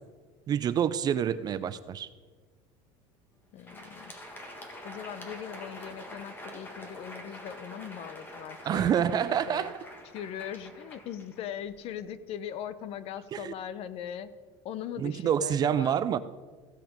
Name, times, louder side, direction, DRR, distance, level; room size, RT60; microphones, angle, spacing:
voice 1, 0.5-2.1 8.7-9.7 13.3-13.5 15.0-16.2, right 9 dB, 30° right, 14 dB, 0.4 m, -27 dB
voice 2, 3.5-4.1 4.8-9.7 10.1-14.3 14.6-16.0, left 9 dB, 45° left, 14 dB, 0.6 m, -40 dB
Crowd, 3.5-11.9, left 1 dB, 15° left, 1.6 m, -46 dB
15.5 x 5.9 x 5.1 m, 1.4 s
cardioid pair, 145°, 14 cm